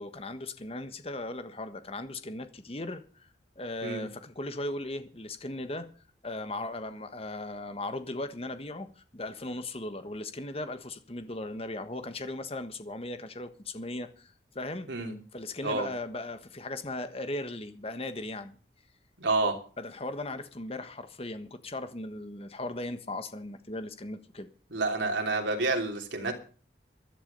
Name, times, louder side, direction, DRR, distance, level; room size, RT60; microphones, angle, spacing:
voice 1, 0.0-5.9 6.2-14.9 15.3-18.6 19.8-24.5, left 2 dB, 35° left, 1.4 m, -37 dB
voice 2, 19.2-19.6 24.7-26.3, right 3 dB, 85° right, 3.0 m, -29 dB
16.0 x 11.0 x 5.5 m
head